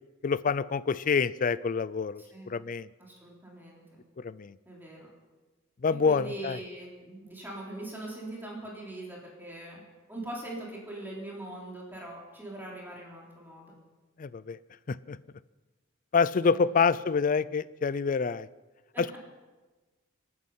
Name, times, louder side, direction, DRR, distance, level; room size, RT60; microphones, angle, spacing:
voice 1, 0.2-2.9 4.2-4.5 5.8-6.6 14.2-14.6 14.9-15.2 16.1-18.5 19.0-19.2, left 5 dB, 40° left, 18 dB, 0.4 m, -27 dB
voice 2, 2.2-2.6 3.0-3.8 4.7-5.1 6.0-9.8 10.1-13.7 16.4-16.8 18.9-19.0, right 1 dB, 10° right, -3 dB, 3.6 m, -41 dB
26.0 x 9.6 x 5.6 m, 1.2 s
head